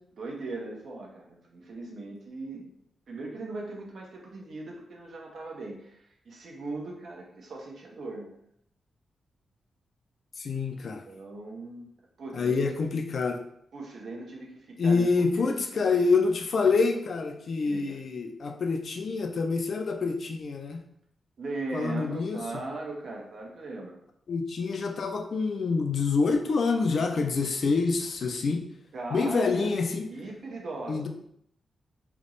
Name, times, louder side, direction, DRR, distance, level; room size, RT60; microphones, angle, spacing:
voice 1, 0.2-2.7 3.1-6.0 6.2-8.3 11.0-11.9 12.2-12.6 13.7-15.1 15.4-15.9 17.6-18.0 21.4-24.0 28.9-29.7 30.1-31.1, right 2 dB, 60° right, -1 dB, 1.0 m, -38 dB
voice 2, 10.4-11.0 12.3-13.4 14.8-20.8 21.7-22.4 24.3-28.6 29.1-30.1 30.9-31.1, left 4 dB, 55° left, 5 dB, 0.5 m, -26 dB
3.5 x 3.0 x 4.0 m, 0.71 s
wide cardioid pair, 145°, 0 cm